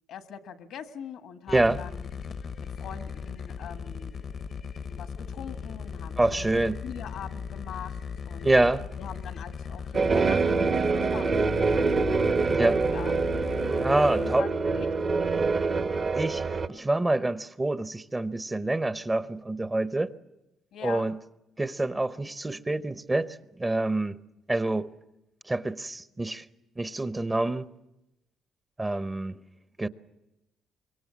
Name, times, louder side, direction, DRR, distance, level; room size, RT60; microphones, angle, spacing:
voice 1, 0.1-2.2 2.6-4.1 4.9-8.5 9.0-12.5 12.9-13.1 14.2-14.9 20.7-21.1, left 8 dB, 85° left, 1.5 m, -43 dB
sound 1, 1.5-14.4, left 6 dB, 50° left, 0.8 m, -37 dB
voice 2, 1.5-1.8 6.2-6.8 8.4-8.8 12.5-12.8 13.8-14.5 16.1-16.4 16.7-20.2 20.8-21.2 21.6-24.2 24.5-24.9 25.5-26.4 26.8-27.7 28.8-29.4 29.8-29.9, right 2 dB, 20° right, 0.8 m, -26 dB
sound 2, 9.9-16.7, right 4 dB, 40° right, 0.9 m, -25 dB
25.0 x 22.5 x 7.4 m
cardioid pair, 90°, 0 cm